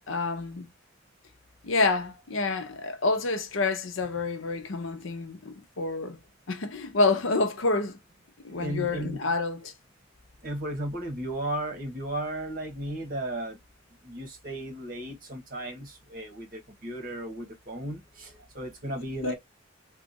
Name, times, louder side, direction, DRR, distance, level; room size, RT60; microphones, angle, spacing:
voice 1, 0.1-0.7 1.6-6.2 6.5-8.0 8.4-9.7 19.2-19.3, left 3 dB, 75° left, 0.7 m, -28 dB
voice 2, 8.5-9.2 10.4-13.6 14.0-19.4, right 1 dB, 45° right, 1.6 m, -35 dB
3.5 x 2.4 x 4.1 m
head